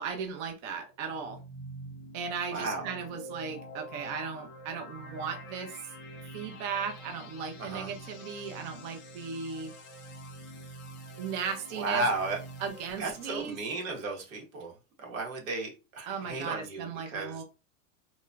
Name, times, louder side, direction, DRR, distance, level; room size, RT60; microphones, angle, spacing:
voice 1, 0.0-1.4 2.1-5.8 6.3-9.7 11.2-12.0 12.6-13.6 16.1-17.4, right 6 dB, 35° right, 4 dB, 0.5 m, -36 dB
sound 1, 1.0-13.6, right 1 dB, 30° left, 0.6 m, -46 dB
voice 2, 2.5-2.9 7.6-7.9 11.7-12.4 13.0-14.7 15.0-17.4, right 2 dB, 85° right, 1 dB, 1.3 m, -34 dB
2.9 x 2.3 x 2.3 m, 0.30 s
supercardioid pair, 155°, 39 cm